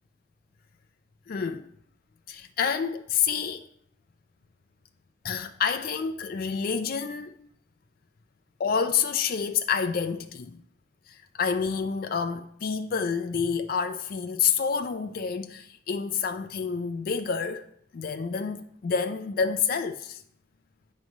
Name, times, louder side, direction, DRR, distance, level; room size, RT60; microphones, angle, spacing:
voice 1, 1.3-1.7 2.3-3.7 5.2-7.5 8.6-10.6 11.1-17.6 17.9-20.2, left 6 dB, 50° left, 0.3 m, -28 dB
8.2 x 3.1 x 5.3 m
head